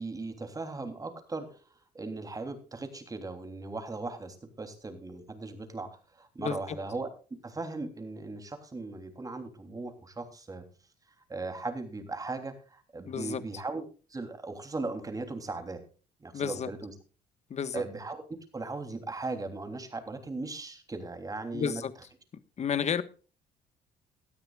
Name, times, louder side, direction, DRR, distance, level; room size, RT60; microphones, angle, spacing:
voice 1, 0.0-1.6 1.9-5.9 6.2-7.1 7.4-10.6 11.3-13.8 14.1-15.8 16.2-16.9 17.7-18.2 18.5-21.8, right 3 dB, 20° right, 7 dB, 3.3 m, -38 dB
voice 2, 13.0-13.4 16.3-16.7 17.5-17.8 21.5-21.9 22.6-23.0, left 7 dB, 40° left, 12 dB, 1.4 m, -31 dB
18.0 x 13.0 x 2.4 m, 0.36 s
cardioid pair, 110°, 17 cm